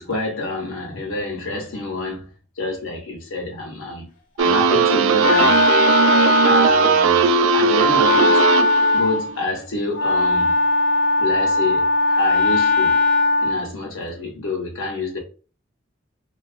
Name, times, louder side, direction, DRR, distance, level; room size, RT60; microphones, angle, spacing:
voice 1, 0.0-2.2 2.6-4.1 4.4-5.6 6.4-8.4 8.9-10.6 11.2-13.0 13.4-15.2, left 2 dB, 85° left, 0.7 m, -27 dB
sound 1, 4.4-9.0, right 5 dB, 80° right, 0.3 m, -17 dB
Wind instrument woodwind instrument, 4.6-13.7, left 3 dB, 40° left, 0.5 m, -20 dB
2.7 x 2.3 x 2.4 m
head